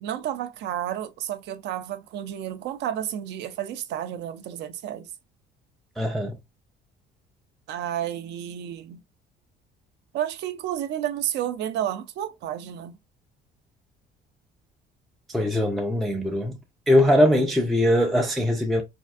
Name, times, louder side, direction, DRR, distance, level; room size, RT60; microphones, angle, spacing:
voice 1, 0.0-5.1 7.7-9.0 10.1-13.0, right 11 dB, 60° right, 0.5 m, -31 dB
voice 2, 6.0-6.4 15.3-16.6 16.9-18.8, left 1 dB, ahead, 0.3 m, -21 dB
4.2 x 2.5 x 2.4 m
cardioid pair, 170°, 20 cm